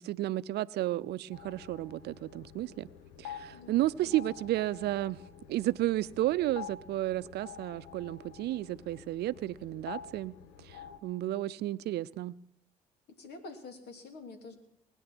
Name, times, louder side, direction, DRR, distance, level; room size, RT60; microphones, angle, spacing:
voice 1, 0.0-2.9 3.2-5.2 5.5-10.3 10.6-12.3, right 15 dB, 70° right, 0.6 m, -32 dB
sound 1, 1.3-11.0, left 8 dB, 85° left, 1.2 m, -48 dB
voice 2, 3.5-4.2 13.2-14.6, left 3 dB, 65° left, 3.0 m, -47 dB
21.0 x 9.9 x 6.1 m
hypercardioid pair, 60°, 18 cm